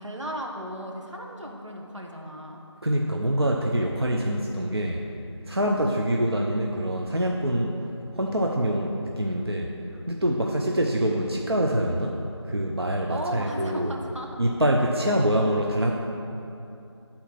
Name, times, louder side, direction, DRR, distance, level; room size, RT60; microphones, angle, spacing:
voice 1, 0.0-2.6 10.4-10.6 13.1-14.3 15.0-15.2, equal, 90° right, 0 dB, 1.5 m, -36 dB
voice 2, 2.8-5.0 5.5-7.8 8.1-9.7 10.1-12.2 12.4-13.9 14.4-15.9, equal, 55° right, 0 dB, 0.7 m, -25 dB
10.5 x 4.2 x 5.9 m, 2.8 s
figure-of-eight pair, 175°, 15 cm